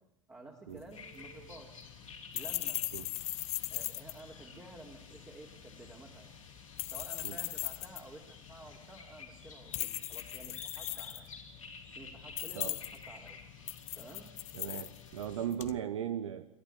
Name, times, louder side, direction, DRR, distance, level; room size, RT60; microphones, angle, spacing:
voice 1, 0.3-1.7 2.3-2.8 3.7-6.3 6.9-11.3 11.9-13.4 13.9-14.3, right 2 dB, 15° right, -1 dB, 3.4 m, -52 dB
sound 1, 0.7-15.8, left 16 dB, 40° left, 0.9 m, -41 dB
sound 2, 0.9-15.5, left 4 dB, 80° left, 3.9 m, -52 dB
voice 2, 14.5-16.5, right 10 dB, 65° right, 12 dB, 1.0 m, -37 dB
28.5 x 12.0 x 9.8 m, 0.83 s
figure-of-eight pair, 80°, 17 cm